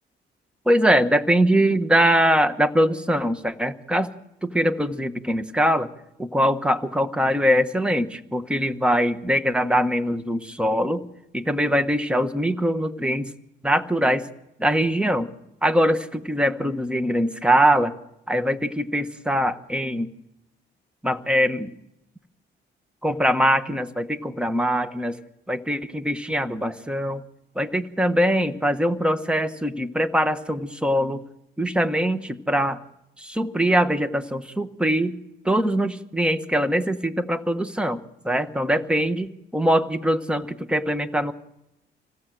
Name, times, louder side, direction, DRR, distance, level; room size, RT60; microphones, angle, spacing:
voice 1, 0.6-4.1 4.4-5.9 6.2-11.0 11.3-13.3 13.6-14.2 14.6-15.3 15.6-17.9 18.3-20.1 21.0-21.7 23.0-25.2 25.5-27.2 27.5-31.2 31.6-32.8 33.2-35.1 35.4-39.3 39.5-41.3, equal, 5° right, 10 dB, 1.4 m, -22 dB
27.0 x 17.5 x 7.8 m, 0.87 s
cardioid pair, 90°, 20 cm